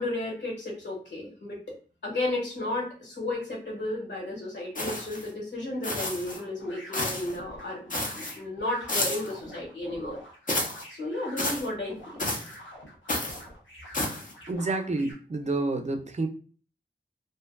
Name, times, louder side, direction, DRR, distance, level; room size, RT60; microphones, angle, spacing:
voice 1, 0.0-1.6 2.0-10.2 10.9-12.3, left 2 dB, 70° left, -3 dB, 1.3 m, -33 dB
sound 1, 4.7-5.3 5.8-6.4 6.9-7.3 7.9-8.3 8.9-9.3 10.5-10.8 11.4-11.7 12.2-12.6 13.1-13.4 13.9-14.3, left 1 dB, 45° left, 0.6 m, -31 dB
sound 2, 6.2-15.1, equal, 90° left, 0.6 m, -47 dB
voice 2, 14.5-16.3, right 2 dB, 35° right, 5 dB, 0.4 m, -29 dB
2.7 x 2.2 x 2.2 m, 0.39 s
wide cardioid pair, 50°, 19 cm